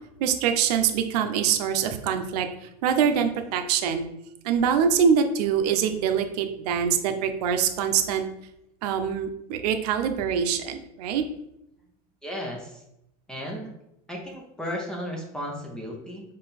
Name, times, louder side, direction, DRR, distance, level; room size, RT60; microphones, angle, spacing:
voice 1, 0.2-2.5 2.8-4.1 4.4-8.2 8.8-11.2, right 7 dB, 80° right, 6 dB, 0.6 m, -24 dB
voice 2, 12.2-12.8 13.3-13.7 14.1-16.2, equal, 5° left, -1 dB, 0.6 m, -34 dB
3.8 x 3.3 x 4.1 m, 0.81 s
supercardioid pair, 165°, 20 cm